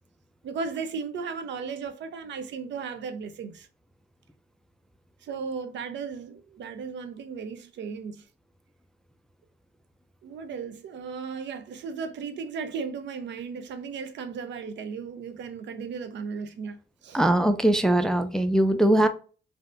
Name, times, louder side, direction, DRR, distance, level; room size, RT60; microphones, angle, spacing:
voice 1, 0.4-3.7 5.2-8.2 10.2-17.2, right 5 dB, 65° right, 0.6 m, -36 dB
voice 2, 17.1-19.1, right 1 dB, 5° left, 0.3 m, -21 dB
3.2 x 2.7 x 2.5 m
cardioid pair, 90°, 20 cm